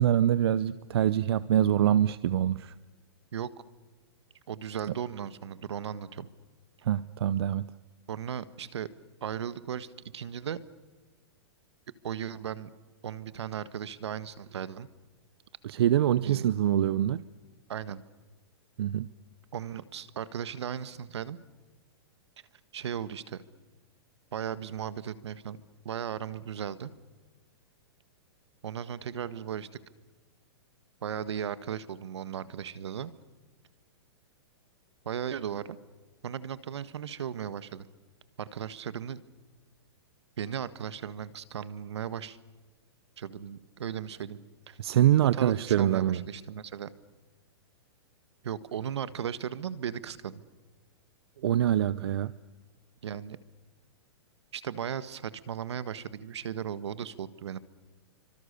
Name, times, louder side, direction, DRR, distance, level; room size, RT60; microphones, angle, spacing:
voice 1, 0.0-2.7 6.9-7.7 15.6-17.2 18.8-19.1 44.8-46.2 51.4-52.3, right 11 dB, 65° right, 17 dB, 0.8 m, -24 dB
voice 2, 4.5-6.3 8.1-8.9 9.2-10.6 12.0-12.7 13.0-14.9 16.2-16.4 17.7-18.0 19.5-21.4 22.7-23.4 24.3-25.6 25.8-26.9 28.6-29.8 31.0-33.1 35.0-35.8 36.2-37.9 38.4-39.2 40.4-42.4 43.2-44.4 44.7-44.8 45.3-46.9 48.4-50.4 53.0-53.4 54.5-57.6, right 8 dB, 85° right, 15 dB, 1.6 m, -36 dB
29.5 x 25.0 x 6.9 m, 1.3 s
hypercardioid pair, 155°, 14 cm